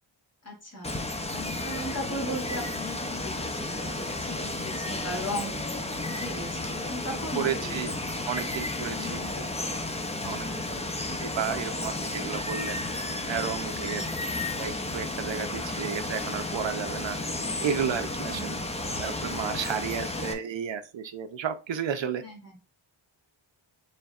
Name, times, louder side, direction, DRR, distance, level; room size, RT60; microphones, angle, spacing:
voice 1, 0.4-0.9 1.3-5.6 6.1-7.8 8.4-8.5 8.9-9.7 10.2-10.9 13.7-14.2 18.3-18.6 22.2-22.6, equal, 30° left, 0 dB, 1.8 m, -38 dB
Water, 0.8-20.3, left 2 dB, 15° left, 0.5 m, -33 dB
voice 2, 7.3-7.9 8.3-9.2 10.2-10.5 11.2-12.8 13.3-14.0 14.6-17.2 17.6-18.6 19.0-22.2, right 8 dB, 65° right, 9 dB, 0.6 m, -32 dB
6.8 x 3.3 x 2.3 m, 0.31 s
wide cardioid pair, 135°, 48 cm